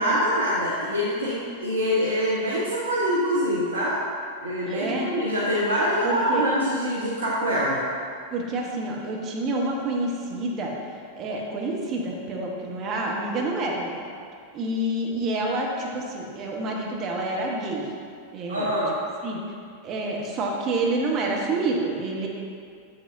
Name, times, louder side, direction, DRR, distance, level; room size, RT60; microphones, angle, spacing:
voice 1, 0.0-4.0 4.4-7.8 18.5-18.9, equal, 75° right, -6 dB, 0.9 m, -24 dB
voice 2, 4.7-5.1 6.0-6.4 8.3-10.7 11.2-14.0 14.5-17.8 18.3-18.7 19.2-19.4 19.8-22.3, right 2 dB, 35° right, -1 dB, 1.1 m, -28 dB
7.4 x 7.1 x 2.6 m, 2.3 s
figure-of-eight pair, 90°, 0 cm